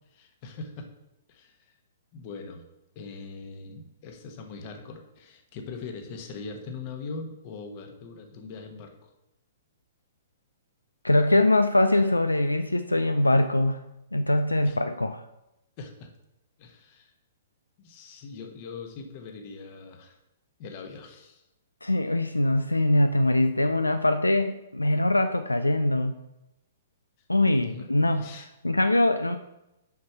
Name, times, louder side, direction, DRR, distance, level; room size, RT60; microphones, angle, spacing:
voice 1, 0.1-0.9 1.3-1.7 2.1-2.6 2.9-9.1 14.6-14.8 15.8-16.1 16.6-17.1 17.8-20.2 20.6-21.4 27.4-27.9 28.2-28.5, left 4 dB, 40° left, 5 dB, 1.3 m, -41 dB
voice 2, 11.0-13.8 14.1-15.2 21.8-26.2 27.3-28.3 28.6-29.4, left 1 dB, 85° left, 9 dB, 0.4 m, -23 dB
6.3 x 5.7 x 5.7 m, 0.90 s
figure-of-eight pair, 115°, 0 cm